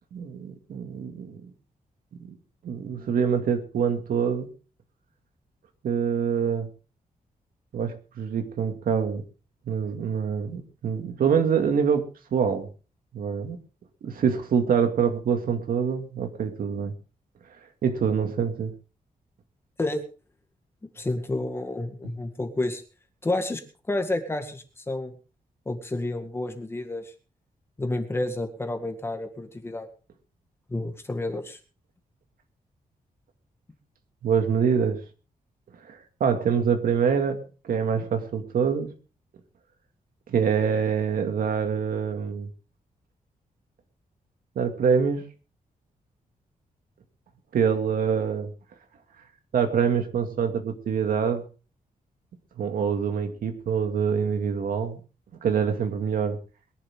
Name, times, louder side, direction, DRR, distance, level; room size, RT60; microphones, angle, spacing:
voice 1, 0.1-1.4 2.3-2.4 2.6-4.5 5.8-6.7 7.7-9.2 9.7-12.7 13.1-13.6 14.0-16.9 17.8-18.7 34.2-35.0 35.9-37.4 37.6-38.9 40.3-42.5 44.6-45.2 47.5-48.5 49.5-51.4 52.6-55.0 55.4-56.4, right 6 dB, 80° right, 6 dB, 2.2 m, -25 dB
voice 2, 20.8-22.8 23.2-23.6 23.9-25.1 25.7-27.1 27.8-29.9 30.7-31.6, left 2 dB, 15° left, 6 dB, 2.0 m, -30 dB
22.0 x 11.0 x 3.7 m, 0.36 s
wide cardioid pair, 175°, 15 cm